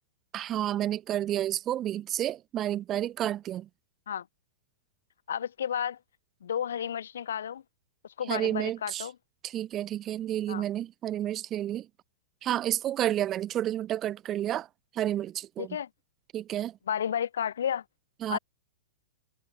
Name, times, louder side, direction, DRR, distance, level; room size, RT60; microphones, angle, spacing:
voice 1, 0.3-3.7 8.3-9.1 9.4-11.9 12.4-14.7 14.9-15.8 16.3-16.8 18.2-18.4, right 12 dB, 20° right, 0.4 m, -30 dB
voice 2, 5.3-6.0 6.4-7.6 8.2-9.1 10.5-10.6 15.6-15.9 16.9-17.8 18.3-18.4, left 9 dB, 85° left, 1.1 m, -32 dB
hypercardioid pair, 160°, 0 cm